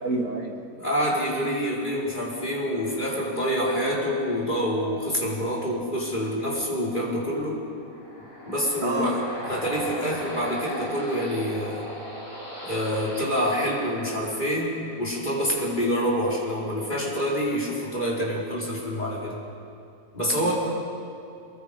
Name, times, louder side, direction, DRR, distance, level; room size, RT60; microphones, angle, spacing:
voice 1, 0.0-0.8 8.8-9.1 13.2-13.3 20.4-20.5, right 2 dB, 65° right, 2 dB, 2.2 m, -29 dB
voice 2, 0.8-7.6 8.5-9.2 9.5-11.9 12.6-19.4 20.1-20.5, equal, 30° left, -4 dB, 4.5 m, -27 dB
sound 1, 7.5-15.0, equal, 65° left, 7.4 m, -38 dB
26.5 x 22.5 x 5.0 m, 2.5 s
omnidirectional pair, 1.5 m